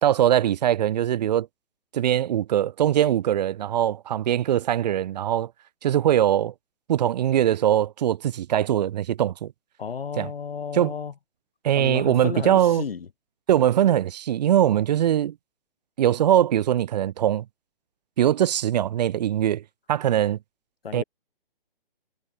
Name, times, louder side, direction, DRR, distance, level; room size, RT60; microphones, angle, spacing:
voice 1, 0.0-1.5 1.9-5.5 5.8-6.5 6.9-9.5 10.2-10.3 10.7-10.9 11.6-12.8 13.5-15.3 16.0-17.4 18.2-19.6 19.9-20.4 20.9-21.0, right 11 dB, 45° right, 1.3 m, -21 dB
voice 2, 9.8-11.1 11.8-13.1 20.8-21.0, left 6 dB, 75° left, 5.1 m, -32 dB
hypercardioid pair, 150°, 29 cm